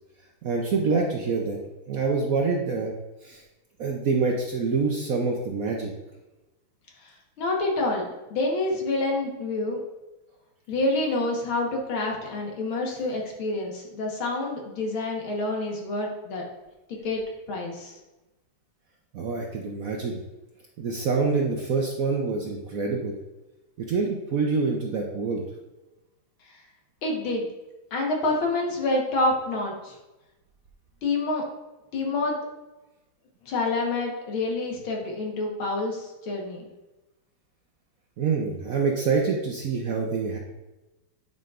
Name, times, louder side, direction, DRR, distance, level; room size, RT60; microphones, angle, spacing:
voice 1, 0.4-1.6 1.9-2.9 3.2-3.4 3.8-5.9 19.1-20.2 20.8-23.1 23.8-25.4 38.2-40.4, right 4 dB, 60° right, 0 dB, 0.9 m, -26 dB
voice 2, 7.4-9.8 10.7-16.5 16.9-18.0 27.0-27.5 27.9-29.9 31.0-31.4 31.9-32.3 33.4-36.7, left 2 dB, 80° left, 0 dB, 2.2 m, -27 dB
9.6 x 5.3 x 2.5 m, 1.0 s
omnidirectional pair, 2.2 m